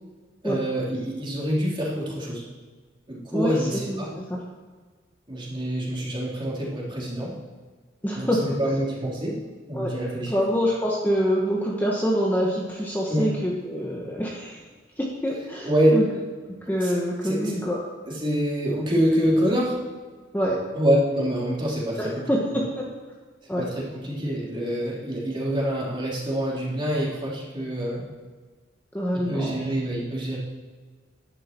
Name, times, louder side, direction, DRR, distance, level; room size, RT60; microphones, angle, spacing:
voice 1, 0.4-2.4 3.1-4.1 5.3-7.3 8.2-9.4 9.7-10.4 13.1-13.3 15.6-16.0 16.8-17.0 17.2-17.6 18.1-19.8 20.7-22.3 23.6-28.0 29.1-30.4, equal, 25° right, -5 dB, 3.3 m, -26 dB
voice 2, 3.3-4.4 8.0-8.5 9.7-9.9 10.3-14.6 15.0-16.1 16.7-17.8 20.3-20.6 22.0-22.7 23.5-23.7 28.9-29.6, equal, 10° left, -3 dB, 1.3 m, -26 dB
11.0 x 10.5 x 4.5 m, 1.4 s
head